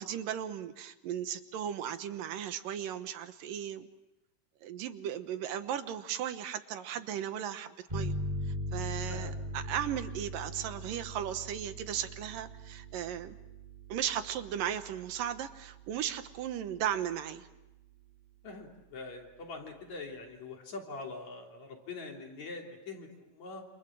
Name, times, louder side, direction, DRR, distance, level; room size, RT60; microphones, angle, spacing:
voice 1, 0.0-3.9 4.6-8.1 8.4-13.4 13.9-17.5, right 10 dB, 75° right, 10 dB, 2.8 m, -36 dB
sound 1, 7.9-17.2, equal, 10° right, 5.3 m, -41 dB
voice 2, 18.4-23.6, left 3 dB, 55° left, 1 dB, 4.5 m, -43 dB
28.5 x 27.5 x 7.5 m, 0.94 s
omnidirectional pair, 4.0 m